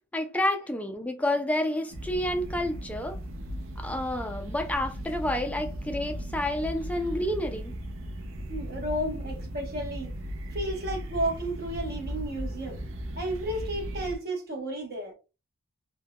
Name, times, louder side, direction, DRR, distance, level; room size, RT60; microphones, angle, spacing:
voice 1, 0.1-3.2 3.8-7.8, left 1 dB, 5° left, 0.3 m, -29 dB
sound 1, 1.9-14.2, equal, 70° right, 0.5 m, -37 dB
voice 2, 8.5-10.1 10.5-12.8 13.2-15.1, right 1 dB, 50° right, 1.0 m, -32 dB
3.4 x 2.2 x 2.2 m
head